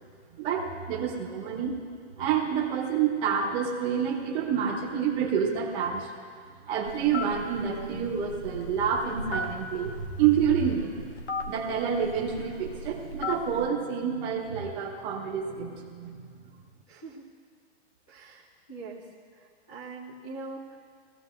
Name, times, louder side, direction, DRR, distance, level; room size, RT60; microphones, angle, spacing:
voice 1, 0.4-1.7 2.2-6.1 6.7-11.0 11.5-16.3, right 7 dB, 15° right, -4 dB, 1.2 m, -28 dB
Telephone, 6.8-13.7, left 2 dB, 90° left, 1.5 m, -37 dB
voice 2, 16.9-17.3 18.1-19.1 19.3-20.8, right 3 dB, 10° left, -8 dB, 0.4 m, -43 dB
22.0 x 15.5 x 2.6 m, 2.2 s
hypercardioid pair, 180°, 33 cm